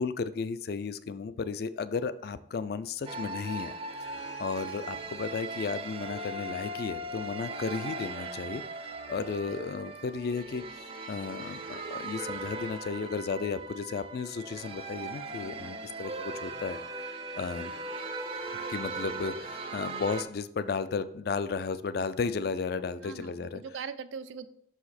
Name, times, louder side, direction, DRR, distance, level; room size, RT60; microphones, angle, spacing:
voice 1, 0.0-3.7 4.0-8.6 9.1-17.1 17.4-17.7 18.7-23.6, left 5 dB, 55° left, 14 dB, 0.3 m, -34 dB
sound 1, 3.1-20.2, right 2 dB, 30° right, 0.5 m, -39 dB
voice 2, 23.0-24.5, right 6 dB, 85° right, 12 dB, 0.5 m, -42 dB
5.9 x 4.9 x 4.1 m, 0.70 s
head